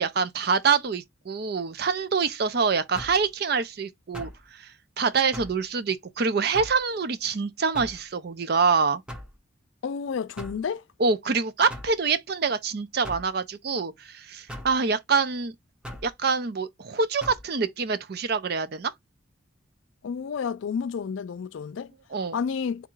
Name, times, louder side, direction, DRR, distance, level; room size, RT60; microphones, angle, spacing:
voice 1, 0.0-9.0 11.0-15.5 16.0-18.9 22.1-22.4, right 5 dB, 50° right, 0.5 m, -26 dB
sound 1, 2.9-3.3 4.1-4.4 5.3-5.6 6.5-6.8 7.7-8.0 9.1-9.4 10.4-10.6 11.7-11.9 13.0-13.3 14.5-14.7 15.8-16.1 17.2-17.4, left 1 dB, 5° right, 0.6 m, -39 dB
voice 2, 9.8-10.8 20.0-21.9 22.3-22.9, left 6 dB, 70° left, 0.3 m, -30 dB
3.6 x 2.4 x 4.5 m
head